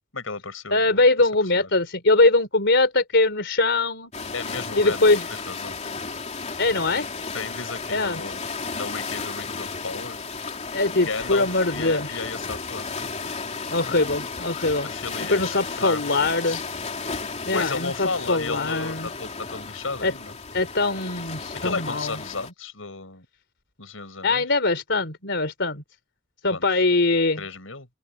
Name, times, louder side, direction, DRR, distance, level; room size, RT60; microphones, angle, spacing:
voice 1, 0.1-1.3 1.6-1.7 4.3-5.8 7.3-8.4 8.7-10.2 11.0-12.9 14.8-16.6 17.5-20.3 21.5-23.2 23.8-24.4 26.5-26.8 27.4-27.9, left 4 dB, 80° left, 6.7 m, -34 dB
voice 2, 0.7-4.1 4.8-5.3 6.6-7.1 7.9-8.2 10.7-12.2 13.7-14.9 15.3-16.6 17.5-19.1 20.0-20.1 20.5-22.2 24.2-25.8 26.4-27.4, left 2 dB, 60° left, 3.7 m, -22 dB
sound 1, 4.1-22.5, left 4 dB, 35° left, 3.1 m, -34 dB
open air
head